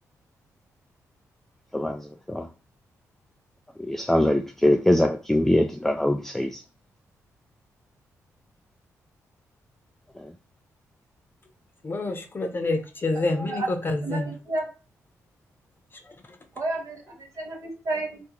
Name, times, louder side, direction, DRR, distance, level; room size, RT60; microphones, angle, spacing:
voice 1, 3.8-6.6, left 1 dB, 5° left, 0.3 m, -22 dB
voice 2, 11.8-14.3 16.0-16.4, left 2 dB, 35° left, 0.8 m, -28 dB
voice 3, 13.1-13.7 14.0-14.2 14.5-14.6 16.6-18.2, right 2 dB, 55° right, 1.1 m, -31 dB
2.9 x 2.4 x 3.7 m
supercardioid pair, 60°, 6 cm